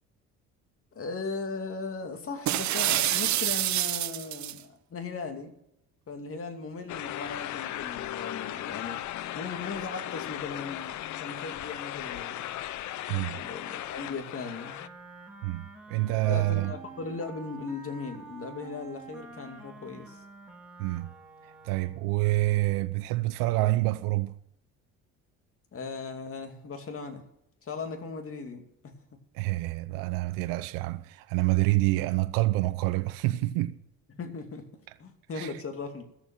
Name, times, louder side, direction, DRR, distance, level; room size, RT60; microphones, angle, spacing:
voice 1, 0.9-5.5 6.1-9.0 9.3-12.4 13.3-14.9 16.0-20.2 25.7-27.2 27.6-29.0 34.1-34.7 35.0-36.0, left 4 dB, 40° left, 2.5 m, -38 dB
sound 1, 2.5-4.6, right 13 dB, 60° right, 0.9 m, -27 dB
sound 2, 6.9-14.9, left 13 dB, 60° left, 0.7 m, -37 dB
Wind instrument woodwind instrument, 14.3-22.2, right 3 dB, 5° right, 3.6 m, -48 dB
voice 2, 15.9-16.7 20.8-21.1 21.6-24.3 29.3-33.7 35.4-35.5, right 19 dB, 85° right, 0.7 m, -27 dB
14.0 x 7.1 x 8.9 m
supercardioid pair, 80°, 33 cm